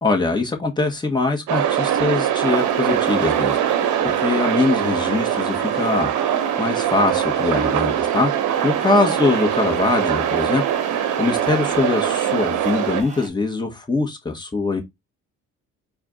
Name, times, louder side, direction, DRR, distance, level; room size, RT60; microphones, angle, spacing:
voice 1, 0.0-3.6 4.0-8.3 8.6-10.6 11.2-14.8, left 3 dB, 15° left, 1.3 m, -22 dB
sound 1, 1.5-13.0, right 10 dB, 75° right, 0.8 m, -22 dB
sound 2, 2.4-13.3, right 2 dB, 25° right, 1.2 m, -38 dB
4.4 x 2.4 x 3.9 m
cardioid pair, 90°, 30 cm